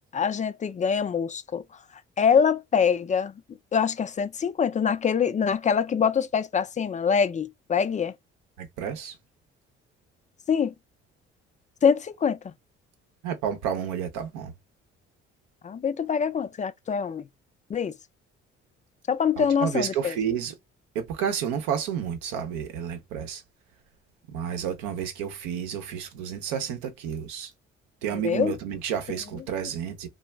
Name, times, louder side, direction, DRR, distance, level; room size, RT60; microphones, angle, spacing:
voice 1, 0.1-1.6 2.2-3.4 3.7-8.1 10.5-10.7 11.8-12.5 15.6-17.3 17.7-17.9 19.1-20.1 28.1-28.6, left 7 dB, 25° left, 0.3 m, -24 dB
voice 2, 8.6-9.2 13.2-14.5 19.4-20.5 20.9-23.4 24.3-27.5 28.0-30.1, right 8 dB, 80° right, 0.7 m, -31 dB
2.1 x 2.0 x 3.3 m
hypercardioid pair, 55°, 30 cm